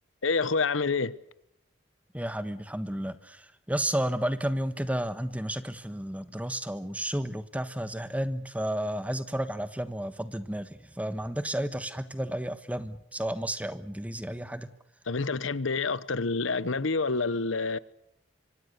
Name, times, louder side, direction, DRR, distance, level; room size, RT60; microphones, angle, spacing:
voice 1, 0.2-1.1 15.1-17.8, left 4 dB, 85° left, 1.0 m, -27 dB
voice 2, 2.1-14.7, right 1 dB, 5° right, 1.3 m, -32 dB
26.5 x 25.0 x 6.8 m
head